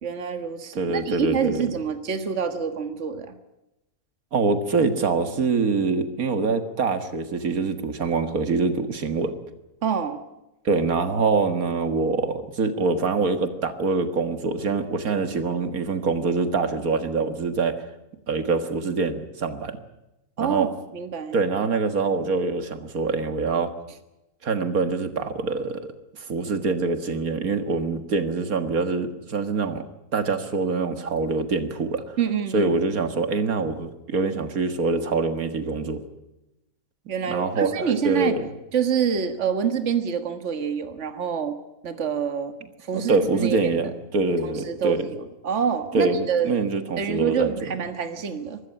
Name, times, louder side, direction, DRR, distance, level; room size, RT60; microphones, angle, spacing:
voice 1, 0.0-3.3 9.8-10.2 15.1-15.2 20.4-21.4 32.2-32.7 37.1-38.4 38.7-41.6 41.8-43.6 44.4-46.5 47.0-48.6, right 7 dB, 55° right, 9 dB, 1.8 m, -27 dB
voice 2, 0.7-1.7 4.3-9.3 10.6-17.9 18.3-19.8 20.4-20.7 21.3-23.7 24.4-29.8 30.1-32.2 32.5-36.0 37.3-38.4 42.9-45.1 45.9-47.5, right 4 dB, 80° right, 9 dB, 2.1 m, -25 dB
24.0 x 13.5 x 10.0 m, 0.95 s
omnidirectional pair, 1.5 m